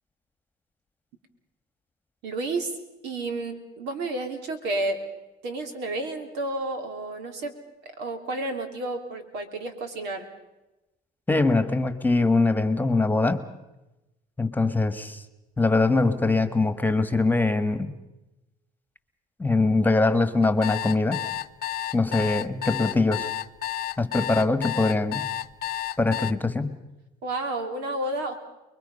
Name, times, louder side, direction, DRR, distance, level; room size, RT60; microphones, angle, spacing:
voice 1, 2.2-2.7 3.0-5.0 5.4-7.5 8.0-10.2 27.2-28.4, right 2 dB, 85° right, 6 dB, 3.2 m, -31 dB
voice 2, 11.3-13.4 14.4-15.2 15.6-17.9 19.4-21.2 21.9-23.3 24.0-25.3 26.0-26.8, left 3 dB, 10° left, 10 dB, 1.6 m, -22 dB
sound 1, 20.4-26.3, left 13 dB, 65° left, 0.7 m, -31 dB
29.5 x 22.0 x 5.5 m, 0.99 s
cardioid pair, 110°, 17 cm